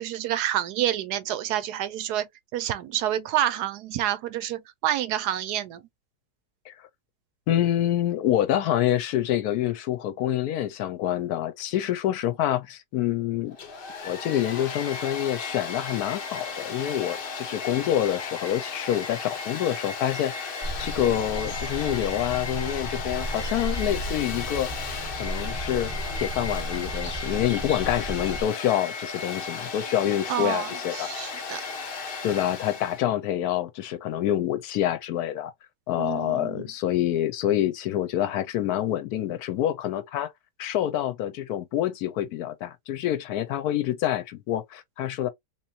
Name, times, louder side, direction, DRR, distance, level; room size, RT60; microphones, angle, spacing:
voice 1, 0.0-2.3 2.5-5.8 30.3-31.6 36.0-36.6, right 11 dB, 75° right, 1.1 m, -28 dB
voice 2, 7.5-13.6 14.0-24.7 25.2-25.9 26.2-31.1 32.2-35.5 35.9-40.3 40.6-45.3, left 12 dB, 70° left, 1.0 m, -27 dB
Domestic sounds home sounds, 13.5-33.0, left 5 dB, 50° left, 0.7 m, -35 dB
sound 1, 20.6-28.4, equal, 20° left, 1.2 m, -34 dB
3.6 x 3.0 x 2.7 m
omnidirectional pair, 1.8 m